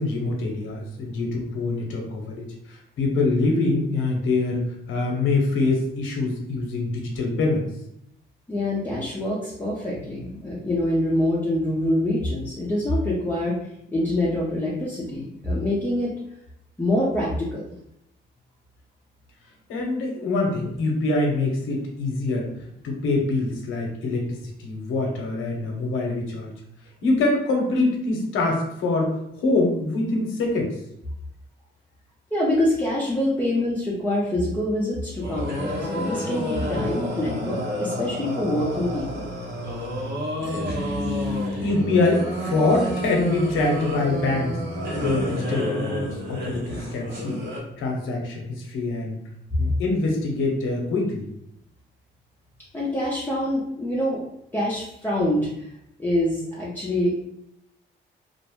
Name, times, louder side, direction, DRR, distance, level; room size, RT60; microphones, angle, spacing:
voice 1, 0.0-7.6 19.7-26.5 27.0-30.8 41.1-44.6 45.0-47.4 47.8-49.2 49.6-51.3, left 2 dB, 85° left, 0 dB, 0.7 m, -25 dB
voice 2, 8.5-13.6 13.9-16.1 16.8-17.6 32.3-39.3 52.7-54.2 54.5-55.7 56.0-57.2, left 1 dB, 10° left, -7 dB, 0.6 m, -25 dB
sound 1, 35.2-47.6, equal, 65° right, 0.9 m, -29 dB
2.5 x 2.1 x 3.0 m, 0.77 s
cardioid pair, 90°, 20 cm